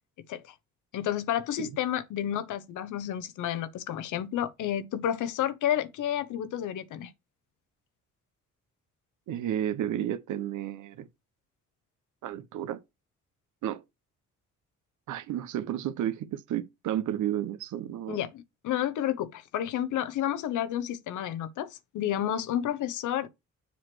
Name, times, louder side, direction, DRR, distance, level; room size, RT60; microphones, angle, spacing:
voice 1, 0.9-7.1 18.1-23.3, left 11 dB, 80° left, 1.0 m, -31 dB
voice 2, 9.3-11.1 12.2-12.8 13.6-13.8 15.1-18.2, right 11 dB, 75° right, 0.9 m, -32 dB
7.2 x 3.1 x 6.1 m
cardioid pair, 90°, 30 cm